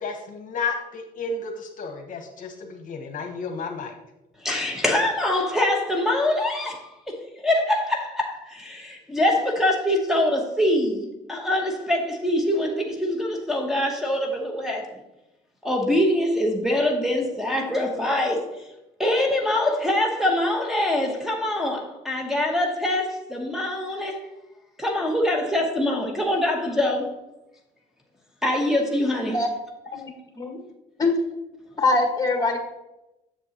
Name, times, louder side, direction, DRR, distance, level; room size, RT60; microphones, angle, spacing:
voice 1, 0.0-3.9, left 4 dB, 50° left, 4 dB, 1.1 m, -32 dB
voice 2, 4.4-14.9 15.6-18.5 19.0-24.2 24.8-27.1 28.4-29.4, left 1 dB, ahead, -2 dB, 1.0 m, -24 dB
voice 3, 29.9-30.6 31.0-31.1 31.8-32.6, left 3 dB, 20° left, 3 dB, 1.6 m, -23 dB
7.5 x 6.9 x 2.9 m, 0.95 s
cardioid pair, 110°, 17 cm